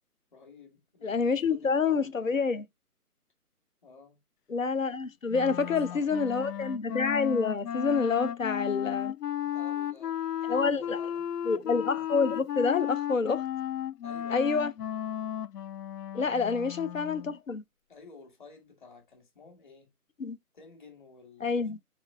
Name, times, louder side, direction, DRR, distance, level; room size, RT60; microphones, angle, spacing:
voice 1, 0.3-2.4 3.8-4.2 5.4-6.4 9.4-11.2 14.0-14.5 16.2-16.8 17.9-19.9 20.5-21.6, left 4 dB, 30° left, 2.2 m, -53 dB
voice 2, 1.0-2.7 4.5-9.1 10.5-11.0 11.5-13.4 14.3-14.7 16.1-17.6 20.2-20.4 21.4-21.8, left 5 dB, 55° left, 0.9 m, -28 dB
Wind instrument woodwind instrument, 5.3-17.4, left 10 dB, 90° left, 0.5 m, -34 dB
4.7 x 4.6 x 5.2 m
figure-of-eight pair, 170°, 46 cm